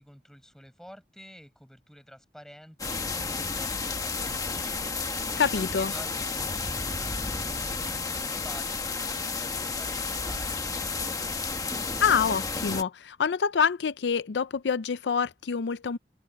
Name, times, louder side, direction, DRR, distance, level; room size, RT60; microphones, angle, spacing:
voice 1, 0.0-5.1 5.5-11.6, equal, 5° left, 7.9 m, -50 dB
sound 1, 2.8-12.8, left 4 dB, 20° left, 1.2 m, -32 dB
voice 2, 5.4-5.9 12.0-16.0, left 6 dB, 85° left, 0.5 m, -26 dB
open air
head